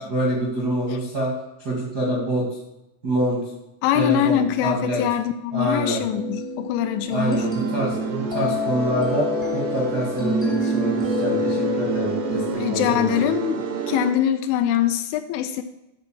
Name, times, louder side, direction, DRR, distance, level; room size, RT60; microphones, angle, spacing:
voice 1, 0.0-1.3 1.6-2.4 3.0-3.4 3.9-5.0 5.5-6.0 7.1-9.3 9.5-13.0, right 1 dB, 70° right, -4 dB, 0.9 m, -26 dB
voice 2, 3.8-7.5 12.6-15.6, left 10 dB, 85° left, 9 dB, 2.8 m, -23 dB
sound 1, 6.1-12.5, equal, 20° left, 0.6 m, -27 dB
sound 2, 7.2-14.1, right 6 dB, 90° right, 1.8 m, -30 dB
12.5 x 4.3 x 7.6 m, 0.92 s
omnidirectional pair, 5.7 m